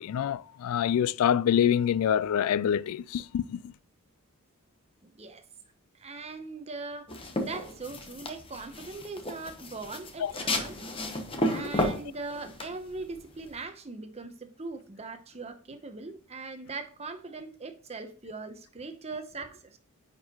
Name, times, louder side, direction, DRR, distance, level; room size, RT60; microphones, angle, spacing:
voice 1, 0.0-3.7 10.2-10.3 11.5-11.6, left 9 dB, 80° left, 0.3 m, -26 dB
voice 2, 5.0-5.4 6.0-10.8 11.5-19.8, right 3 dB, 30° right, 0.8 m, -40 dB
sound 1, 7.1-13.6, left 1 dB, 25° left, 0.9 m, -33 dB
9.5 x 4.5 x 2.9 m
head